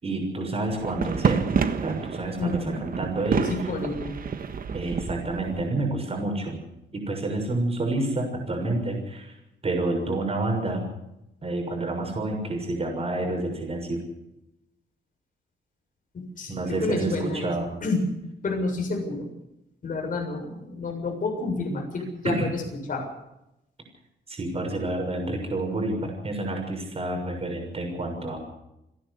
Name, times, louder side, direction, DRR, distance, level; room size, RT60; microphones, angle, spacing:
voice 1, 0.0-1.4 1.8-3.5 4.7-6.6 6.9-9.3 9.6-10.9 11.4-14.0 16.5-17.7 22.2-22.5 24.3-28.4, right 2 dB, 30° right, 2 dB, 6.7 m, -29 dB
sound 1, 0.7-5.7, right 6 dB, 50° right, 1.5 m, -29 dB
voice 2, 2.4-2.8 3.4-4.2 16.1-17.5 17.8-18.0 18.4-19.3 19.8-22.6 22.9-23.1, left 3 dB, 45° left, 2 dB, 7.1 m, -29 dB
28.5 x 11.0 x 8.2 m, 0.86 s
wide cardioid pair, 135°, 19 cm